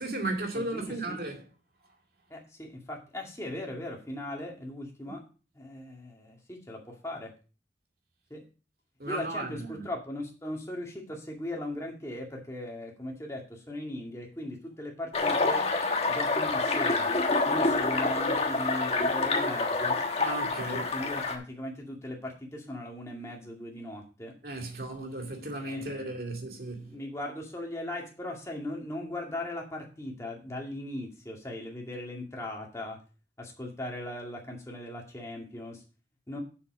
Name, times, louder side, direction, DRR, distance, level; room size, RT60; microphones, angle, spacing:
voice 1, 0.0-1.4 9.0-9.8 20.2-20.9 24.4-27.0, right 2 dB, 55° right, 2.2 m, -35 dB
voice 2, 0.5-1.2 2.3-5.2 5.5-7.3 8.3-8.4 9.1-15.7 16.1-17.1 17.5-20.0 20.6-24.3 25.6-26.2 26.8-33.0 33.4-35.8 36.3-36.4, left 1 dB, 15° left, 2.1 m, -38 dB
sound 1, 15.1-21.4, left 3 dB, 35° left, 1.2 m, -27 dB
7.1 x 7.0 x 5.1 m
head